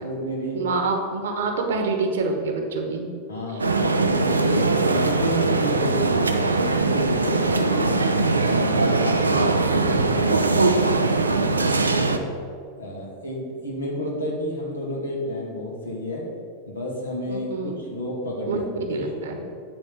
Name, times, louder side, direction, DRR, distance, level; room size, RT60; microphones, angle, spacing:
voice 1, 0.0-0.7 3.3-8.0 8.3-11.5 11.9-12.3 12.8-16.3 16.7-19.1, left 1 dB, 75° left, -2 dB, 2.0 m, -31 dB
voice 2, 0.5-3.1 17.3-17.8 18.5-18.6 18.9-19.4, right 3 dB, 60° right, 3 dB, 1.2 m, -26 dB
sound 1, 3.6-12.2, right 3 dB, 80° right, 0.5 m, -21 dB
9.1 x 4.2 x 6.9 m, 2.3 s
figure-of-eight pair, 90°, 0 cm